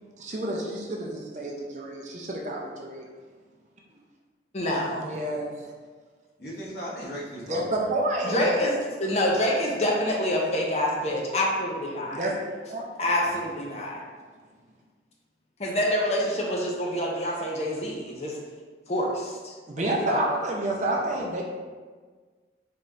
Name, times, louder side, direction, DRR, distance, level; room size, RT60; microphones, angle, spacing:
voice 1, 0.2-3.1 5.0-5.5 7.5-8.6 12.1-12.3 12.7-12.9 19.7-21.4, right 1 dB, 40° right, -1 dB, 0.5 m, -29 dB
voice 2, 4.5-5.1 8.2-12.2 13.0-14.0 15.6-18.4 18.9-20.2, left 1 dB, 40° left, -2 dB, 0.6 m, -27 dB
voice 3, 6.4-7.9 13.2-13.4 20.6-21.2, equal, 60° left, -5 dB, 1.0 m, -38 dB
4.2 x 3.4 x 2.5 m, 1.5 s
head